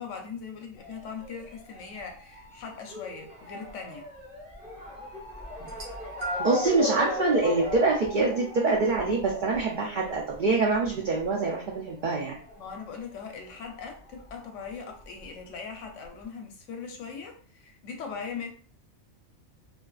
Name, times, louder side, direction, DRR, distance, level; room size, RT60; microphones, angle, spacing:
voice 1, 0.0-4.1 12.6-18.5, left 5 dB, 70° left, 3 dB, 0.9 m, -40 dB
Motor vehicle (road) / Siren, 0.8-13.8 14.0-15.2 15.9-16.0 16.2-16.3, left 2 dB, 10° right, 1.1 m, -38 dB
sound 1, 5.6-6.7 7.6-7.8 8.9-9.0, right 1 dB, 60° right, 1.1 m, -37 dB
voice 2, 6.4-12.4, right 3 dB, 75° right, -2 dB, 0.4 m, -25 dB
2.5 x 2.3 x 2.3 m, 0.44 s
omnidirectional pair, 1.4 m